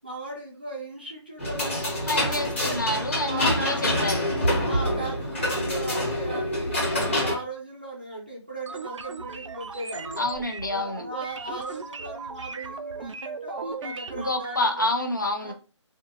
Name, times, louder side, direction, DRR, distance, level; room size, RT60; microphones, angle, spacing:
voice 1, 0.0-2.8 3.2-4.0 4.6-10.2 10.7-14.9 15.4-15.5, right 2 dB, 20° right, 0.5 m, -38 dB
sound 1, 1.4-7.3, left 1 dB, 25° left, 1.0 m, -26 dB
voice 2, 2.1-4.3 10.2-11.1 13.8-15.5, left 2 dB, 40° left, 0.5 m, -28 dB
sound 2, 8.7-14.6, right 4 dB, 80° right, 0.4 m, -37 dB
3.4 x 2.3 x 2.7 m
hypercardioid pair, 180°, 16 cm